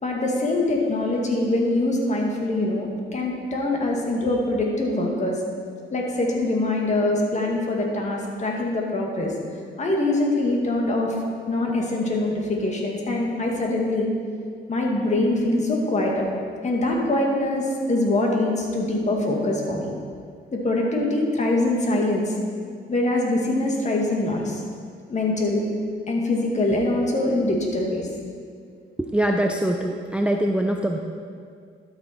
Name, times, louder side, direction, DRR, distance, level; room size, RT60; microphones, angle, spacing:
voice 1, 0.0-5.4 5.9-9.3 9.8-11.2 11.5-14.1 14.7-16.3 16.6-19.9 20.5-22.3 22.9-24.6 25.1-25.6 26.1-28.1, left 2 dB, 35° left, -1 dB, 2.0 m, -23 dB
voice 2, 29.0-31.0, right 1 dB, 5° right, 3 dB, 0.5 m, -23 dB
12.0 x 6.6 x 4.4 m, 2.2 s
cardioid pair, 90°, 20 cm